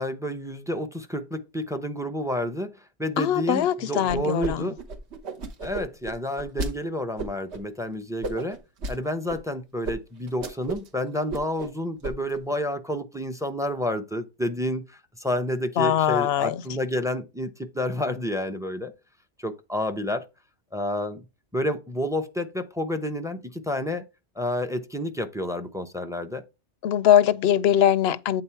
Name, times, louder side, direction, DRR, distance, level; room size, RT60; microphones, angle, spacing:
voice 1, 0.0-4.8 5.6-8.6 8.9-18.9 19.4-20.3 20.7-21.2 21.5-24.0 24.4-26.4, left 1 dB, 5° right, 0.5 m, -30 dB
voice 2, 3.2-4.7 15.8-16.5 26.8-28.4, left 10 dB, 70° left, 0.8 m, -21 dB
sound 1, 4.1-4.5 4.8-6.7 7.2-7.6 8.2-9.0 9.3-9.4 9.8-10.0 10.3-10.9 11.2-11.7 12.0-12.4, right 3 dB, 70° right, 1.4 m, -33 dB
8.7 x 3.9 x 4.5 m
omnidirectional pair, 1.2 m